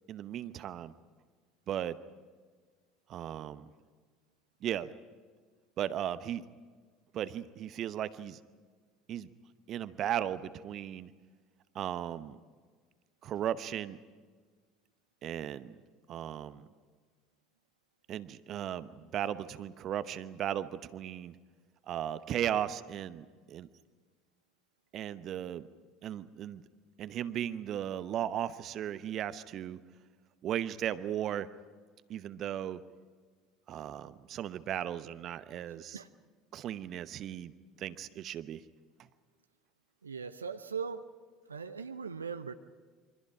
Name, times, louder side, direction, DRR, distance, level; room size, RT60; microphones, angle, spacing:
voice 1, 0.1-0.9 1.7-2.0 3.1-3.7 4.6-4.9 5.8-6.5 7.1-8.4 9.1-9.3 9.7-11.1 11.7-12.4 13.2-14.0 15.2-15.8 16.1-16.7 18.1-21.3 21.9-23.7 24.9-25.7 26.0-26.6 27.0-29.8 30.4-31.5 32.1-32.8 33.7-36.0 36.5-37.5 37.8-38.6, right 10 dB, 45° right, 14 dB, 0.9 m, -36 dB
voice 2, 40.0-41.0 41.5-42.5, right 6 dB, 80° right, 9 dB, 0.7 m, -39 dB
28.0 x 24.5 x 4.9 m, 1.5 s
figure-of-eight pair, 65°, 0 cm